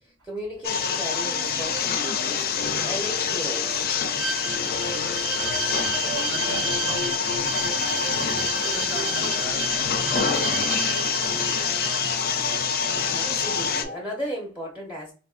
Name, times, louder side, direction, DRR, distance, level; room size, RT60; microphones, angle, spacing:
voice 1, 0.0-3.8 13.1-15.1, equal, 10° right, -2 dB, 0.6 m, -35 dB
sound 1, 0.6-13.8, left 6 dB, 50° left, 0.4 m, -26 dB
sound 2, 1.2-14.0, equal, 35° right, 1.1 m, -40 dB
Bowed string instrument, 4.2-12.1, right 7 dB, 90° right, 0.4 m, -32 dB
voice 2, 4.9-8.2 8.7-10.8, equal, 65° right, -2 dB, 1.0 m, -39 dB
4.1 x 2.5 x 2.4 m, 0.37 s
head